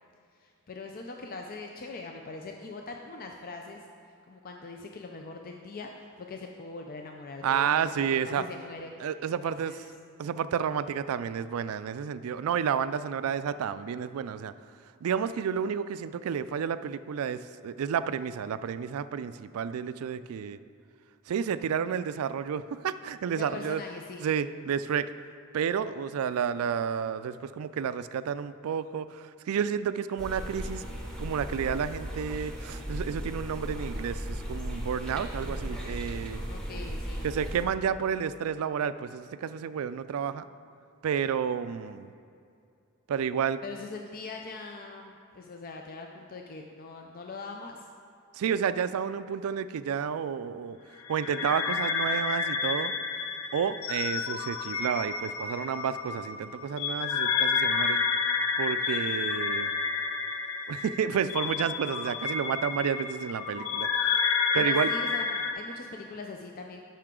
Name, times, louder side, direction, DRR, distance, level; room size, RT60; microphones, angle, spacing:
voice 1, 0.3-3.8 4.2-8.9 9.4-9.8 23.4-24.3 36.5-37.3 43.6-47.9 64.5-66.8, left 3 dB, 40° left, 2 dB, 0.4 m, -42 dB
voice 2, 7.4-8.4 9.0-9.7 10.2-14.5 15.0-20.6 21.3-23.8 24.2-25.1 25.5-30.8 31.2-36.4 37.2-40.4 41.0-42.1 43.1-43.6 48.3-50.8 51.1-52.9 53.5-58.0 58.6-59.7 60.7-64.2 64.5-64.9, right 7 dB, 75° right, 14 dB, 0.3 m, -30 dB
sound 1, 30.2-37.6, equal, 5° left, 1.0 m, -36 dB
sound 2, 51.1-65.5, left 5 dB, 90° left, 0.7 m, -30 dB
12.5 x 5.7 x 3.7 m, 2.5 s
head